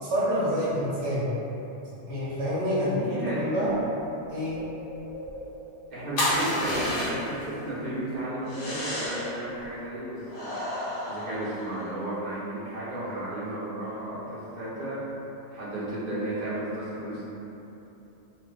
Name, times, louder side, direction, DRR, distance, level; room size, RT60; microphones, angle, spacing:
voice 1, 0.0-1.3 2.1-3.0 3.3-3.8 4.3-4.6, equal, 80° right, -9 dB, 1.0 m, -27 dB
voice 2, 2.7-3.7 5.9-10.6 11.1-15.0 15.5-17.2, right 1 dB, 40° right, -11 dB, 0.9 m, -33 dB
Bird, 4.0-5.8 6.8-7.1 7.3-9.8, left 1 dB, 40° left, 0.8 m, -44 dB
sound 1, 6.2-7.4 8.5-9.4 10.3-12.0, left 1 dB, 85° left, 1.1 m, -30 dB
2.6 x 2.1 x 3.4 m, 3.0 s
omnidirectional pair, 1.2 m